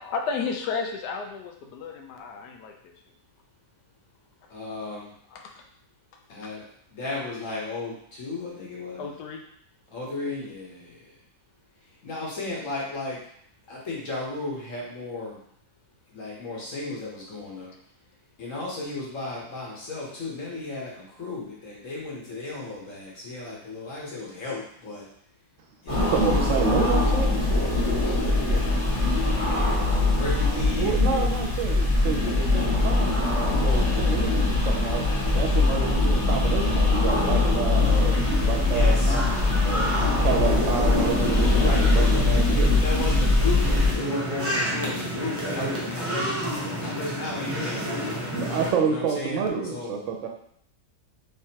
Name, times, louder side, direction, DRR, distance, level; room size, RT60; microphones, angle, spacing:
voice 1, 0.0-2.9 5.3-5.6 6.4-6.5 9.0-9.4 28.0-28.3, left 5 dB, 90° left, 3 dB, 1.2 m, -33 dB
voice 2, 4.5-5.1 6.3-6.6 6.9-9.1 9.9-11.1 12.0-13.2 13.7-15.4 16.1-17.7 18.4-25.1 25.8-27.9 28.9-31.5 38.6-39.2 41.6-41.9 42.7-48.0 48.8-49.9, left 2 dB, 55° left, -4 dB, 1.3 m, -35 dB
sound 1, 25.9-43.9, left 2 dB, 20° left, 1.1 m, -22 dB
voice 3, 26.1-27.4 30.8-33.2 33.5-35.0 35.3-38.2 38.5-39.2 39.6-42.8 48.3-50.3, right 6 dB, 65° right, 2 dB, 0.8 m, -29 dB
sound 2, 37.8-48.7, equal, 15° right, 0.5 m, -31 dB
3.5 x 3.2 x 2.8 m, 0.67 s
omnidirectional pair, 1.7 m